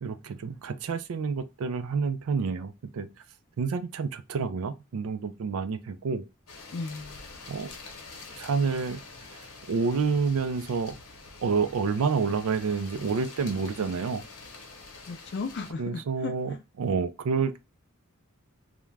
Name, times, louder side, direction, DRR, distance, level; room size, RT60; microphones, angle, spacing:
voice 1, 0.0-3.1 3.6-6.2 7.5-7.7 8.4-9.0 9.3-11.0 11.4-14.2 15.8-17.6, right 5 dB, 75° right, 0.4 m, -29 dB
sound 1, 6.5-15.7, left 3 dB, 90° left, 0.9 m, -46 dB
voice 2, 6.7-7.2 15.1-16.6, left 4 dB, 50° left, 0.4 m, -36 dB
2.4 x 2.1 x 3.1 m
head